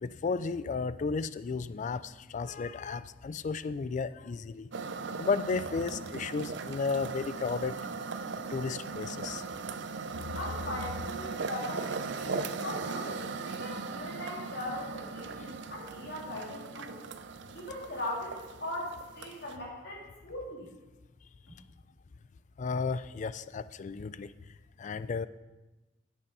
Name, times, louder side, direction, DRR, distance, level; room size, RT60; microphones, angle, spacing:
voice 1, 0.0-4.7 5.2-7.8 8.5-9.4 22.6-24.3 24.8-25.3, left 4 dB, 40° left, 15 dB, 0.4 m, -33 dB
sound 1, 4.7-19.6, right 4 dB, 65° right, 0.6 m, -38 dB
voice 2, 10.3-17.0 17.5-20.7, left 1 dB, 60° left, -3 dB, 3.0 m, -40 dB
8.6 x 8.4 x 5.4 m, 1.1 s
head